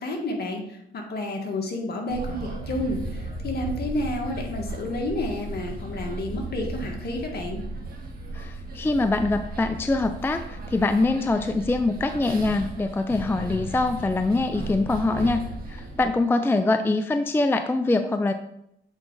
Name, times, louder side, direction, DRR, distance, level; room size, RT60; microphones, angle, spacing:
voice 1, 0.0-7.6, left 1 dB, 55° left, 2 dB, 1.8 m, -30 dB
sound 1, 2.1-16.1, right 2 dB, 50° right, 1.7 m, -35 dB
voice 2, 8.3-15.4 15.7-18.3, left 2 dB, 10° left, 8 dB, 0.4 m, -24 dB
8.1 x 4.5 x 3.8 m, 0.79 s
cardioid pair, 90°, 20 cm